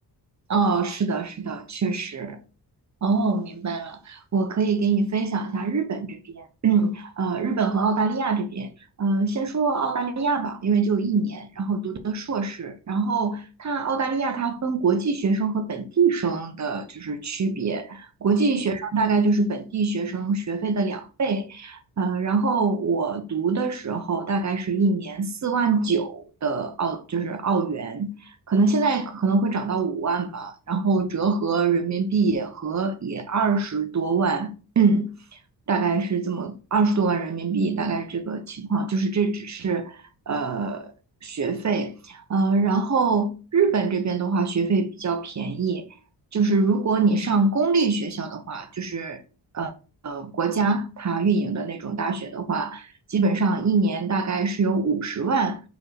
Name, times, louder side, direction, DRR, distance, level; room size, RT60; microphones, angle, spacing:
voice 1, 0.5-2.4 3.0-8.7 9.0-28.1 28.5-35.1 35.7-40.0 40.3-40.9 41.2-45.8 46.3-49.2 49.5-49.7 50.0-55.6, right 4 dB, 40° right, 1.0 m, -24 dB
4.7 x 4.5 x 5.0 m
wide cardioid pair, 145°, 42 cm